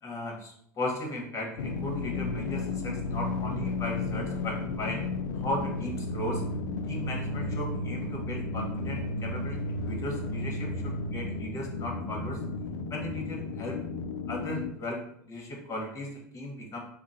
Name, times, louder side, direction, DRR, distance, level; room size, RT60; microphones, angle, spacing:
voice 1, 0.0-5.0 5.4-6.4 6.9-12.4 12.9-13.8 14.3-16.8, left 1 dB, 30° left, 0 dB, 1.2 m, -36 dB
sound 1, 1.6-14.7, left 3 dB, 75° left, 0.4 m, -33 dB
3.6 x 2.1 x 4.1 m, 0.69 s
hypercardioid pair, 95°, 10 cm